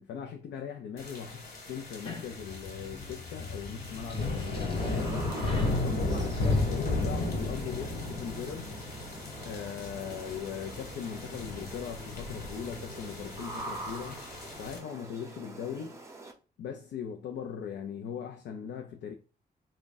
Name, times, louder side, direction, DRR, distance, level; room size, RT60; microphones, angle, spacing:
voice 1, 0.0-5.2 5.7-8.7 9.4-14.3 14.5-16.0 16.6-19.1, left 8 dB, 85° left, 0.5 m, -40 dB
sound 1, 1.0-14.8, left 2 dB, 60° left, 1.3 m, -34 dB
sound 2, 1.8-7.1, left 3 dB, 30° left, 0.6 m, -44 dB
sound 3, 4.5-16.3, right 2 dB, 15° right, 0.7 m, -46 dB
3.5 x 2.2 x 3.9 m
cardioid pair, 130°, 18 cm